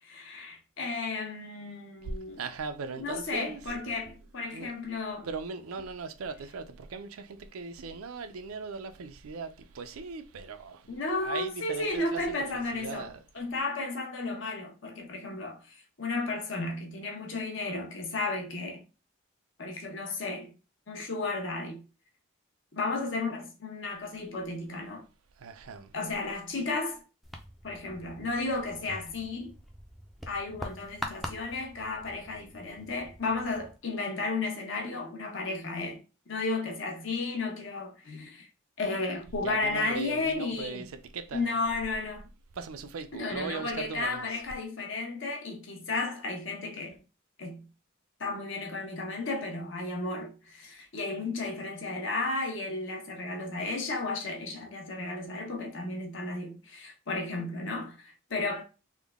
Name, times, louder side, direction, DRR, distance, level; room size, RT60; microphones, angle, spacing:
voice 1, 0.0-2.4 3.0-5.3 10.9-13.1 13.3-18.8 19.6-20.5 20.9-21.8 22.7-25.1 25.9-27.0 27.6-29.5 30.3-36.0 36.3-38.5 38.8-40.8 41.3-42.3 43.1-47.0 47.4-47.6 48.2-58.6, left 3 dB, 65° left, 0.9 m, -33 dB
voice 2, 2.0-4.1 4.5-4.7 5.2-13.2 25.4-25.9 39.4-41.6 42.5-44.3, right 4 dB, 90° right, 0.5 m, -39 dB
sound 1, 27.2-33.8, equal, ahead, 0.4 m, -44 dB
3.6 x 2.2 x 3.5 m
head